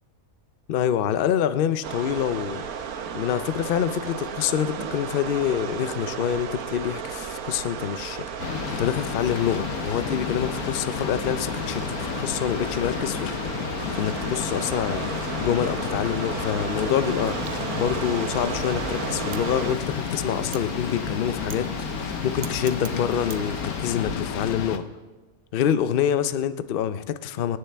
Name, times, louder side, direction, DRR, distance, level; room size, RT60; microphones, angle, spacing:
voice 1, 0.7-2.7 3.1-24.8 25.5-27.6, left 9 dB, 55° left, 12 dB, 0.6 m, -26 dB
sound 1, 1.8-19.8, right 7 dB, 85° right, 1.3 m, -34 dB
sound 2, 8.4-24.8, left 7 dB, 85° left, 1.3 m, -31 dB
Wind, 16.4-24.6, right 8 dB, 65° right, 0.5 m, -40 dB
26.0 x 9.8 x 3.4 m, 1.3 s
omnidirectional pair, 1.5 m